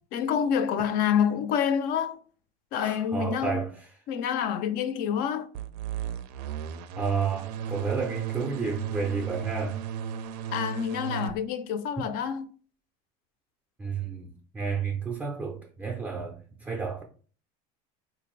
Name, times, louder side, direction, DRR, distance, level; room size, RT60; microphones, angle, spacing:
voice 1, 0.1-2.2 2.7-3.7 4.1-5.5 10.5-12.5, left 8 dB, 50° left, 0.4 m, -27 dB
voice 2, 2.8-3.9 7.0-9.8 13.8-17.0, right 5 dB, 10° right, 0.4 m, -31 dB
sound 1, 5.5-11.3, right 7 dB, 85° right, 0.4 m, -35 dB
3.7 x 2.5 x 3.1 m
cardioid pair, 155°, 20 cm